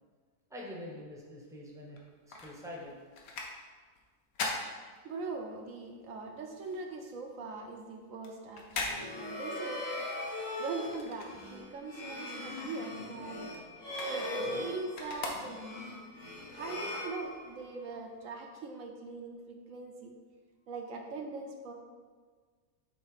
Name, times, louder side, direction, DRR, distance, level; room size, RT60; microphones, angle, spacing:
voice 1, 0.5-2.0 2.3-2.9, left 1 dB, 5° right, -3 dB, 0.7 m, -45 dB
sound 1, 1.9-5.6 5.9-11.9 12.2-16.0 16.5-16.6, left 3 dB, 75° left, 1.3 m, -42 dB
voice 2, 5.0-9.8 10.6-13.5 14.1-16.0 16.5-20.2 20.7-21.7, right 3 dB, 65° right, 2 dB, 1.0 m, -41 dB
sound 2, 8.8-17.8, left 1 dB, 55° left, 1.6 m, -40 dB
7.2 x 2.8 x 4.9 m, 1.5 s
omnidirectional pair, 1.6 m